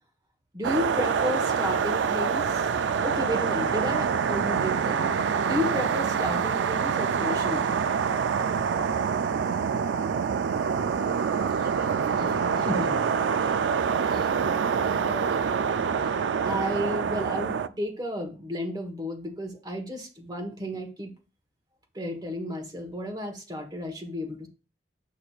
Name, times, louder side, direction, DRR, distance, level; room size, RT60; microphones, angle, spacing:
voice 1, 0.5-7.8 12.6-13.6 14.4-14.6 16.4-21.1 21.9-24.5, left 1 dB, 25° right, 1.3 m, -33 dB
sound 1, 0.6-17.7, right 6 dB, 80° right, 0.4 m, -26 dB
voice 2, 10.8-12.7 13.3-13.6 14.0-14.5 14.8-15.6 15.9-16.2, right 1 dB, 55° right, 0.8 m, -42 dB
8.4 x 5.8 x 2.4 m
head